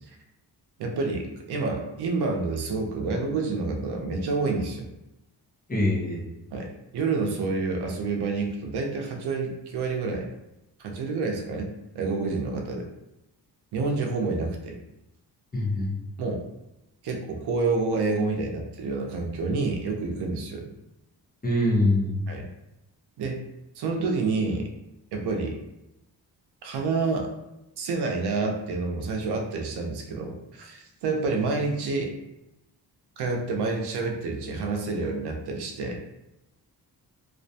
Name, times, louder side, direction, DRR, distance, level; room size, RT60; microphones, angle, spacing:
voice 1, 0.8-4.9 6.5-10.3 10.8-12.9 13.7-14.8 16.2-16.4 17.0-20.7 22.3-22.5 23.2-23.4 23.8-24.7 25.1-25.6 26.6-27.3 27.8-32.1 33.2-36.0, right 3 dB, 80° right, 2 dB, 0.6 m, -28 dB
voice 2, 5.7-6.2 15.5-15.9 21.4-22.2, left 1 dB, 25° left, -3 dB, 0.7 m, -23 dB
2.4 x 2.1 x 2.7 m, 0.90 s
cardioid pair, 115°, 39 cm